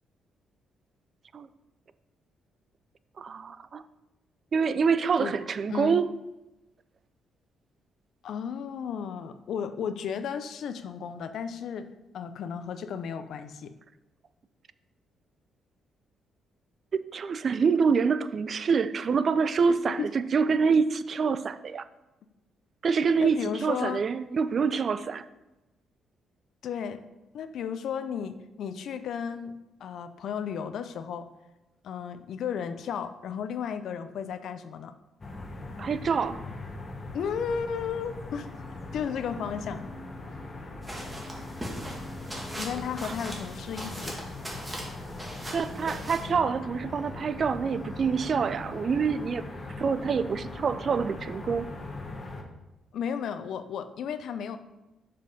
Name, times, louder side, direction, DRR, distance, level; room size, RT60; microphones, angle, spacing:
voice 1, 3.2-3.8 4.5-6.1 16.9-21.9 22.8-25.3 35.8-36.4 43.0-43.2 45.5-49.4 49.8-51.7, right 5 dB, 50° right, 14 dB, 0.4 m, -26 dB
voice 2, 5.7-6.0 8.2-11.9 12.1-13.7 19.7-20.1 23.2-24.0 26.6-27.0 27.3-29.5 29.8-31.3 31.8-35.0 37.1-38.5 38.9-39.9 42.5-44.2 52.9-54.6, left 7 dB, 70° left, 10 dB, 0.6 m, -34 dB
sound 1, 35.2-52.4, left 2 dB, 30° left, 1.2 m, -40 dB
sound 2, 38.4-43.4, left 1 dB, 85° right, 2.7 m, -49 dB
sound 3, 40.8-46.3, equal, 15° right, 1.9 m, -40 dB
6.7 x 5.2 x 5.3 m, 1.0 s
cardioid pair, 90°, 0 cm